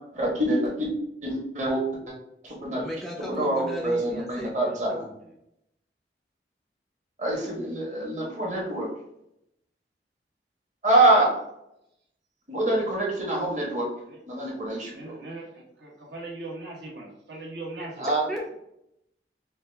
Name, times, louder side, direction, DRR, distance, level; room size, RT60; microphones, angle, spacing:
voice 1, 0.1-0.9 1.2-2.2 2.4-2.8 3.3-5.0 7.2-8.9 10.8-11.3 12.5-13.9 14.3-15.2 18.0-18.3, right 1 dB, 40° right, -2 dB, 1.1 m, -25 dB
voice 2, 2.7-5.1 18.3-18.5, equal, ahead, -1 dB, 0.4 m, -36 dB
voice 3, 14.0-14.5 14.9-18.1, right 2 dB, 75° right, -2 dB, 1.1 m, -40 dB
4.9 x 2.3 x 3.3 m, 0.80 s
head